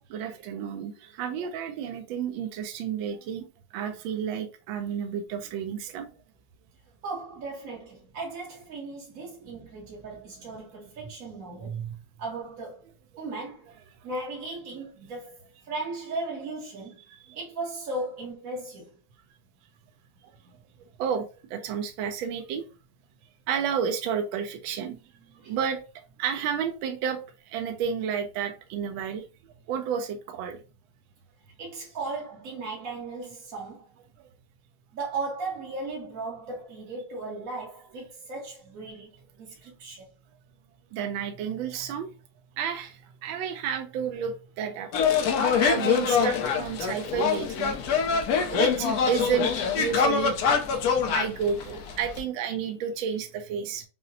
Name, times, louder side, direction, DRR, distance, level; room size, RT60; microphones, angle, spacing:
voice 1, 0.1-3.4 3.7-6.1 11.6-12.0 17.1-17.4 20.2-20.3 21.0-22.7 23.5-25.0 25.5-25.8 26.2-27.2 27.5-30.6 40.9-42.1 42.6-44.9 45.6-47.8 48.5-50.3 51.1-53.8, right 7 dB, 80° right, 1.3 m, -31 dB
voice 2, 7.0-11.7 12.2-12.8 13.2-13.7 14.0-15.4 15.6-17.0 17.3-18.9 20.4-20.5 25.4-25.6 31.6-33.9 34.9-40.0, right 3 dB, 55° right, 1.1 m, -36 dB
sound 1, 44.9-52.2, left 6 dB, 75° left, 0.8 m, -25 dB
5.6 x 2.0 x 2.6 m
omnidirectional pair, 2.2 m